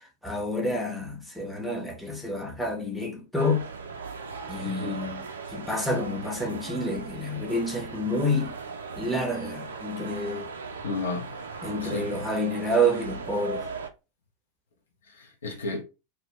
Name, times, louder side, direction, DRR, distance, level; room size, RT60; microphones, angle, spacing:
voice 1, 0.2-3.7 4.5-5.2 5.5-8.5 9.0-10.5 11.6-13.6, equal, ahead, 0.7 m, -28 dB
sound 1, 3.4-13.9, right 4 dB, 65° right, 0.4 m, -38 dB
voice 2, 4.6-5.1 10.8-11.3 11.8-12.3 15.1-15.8, left 3 dB, 65° left, 0.6 m, -33 dB
2.2 x 2.1 x 3.0 m
figure-of-eight pair, 90°, 0 cm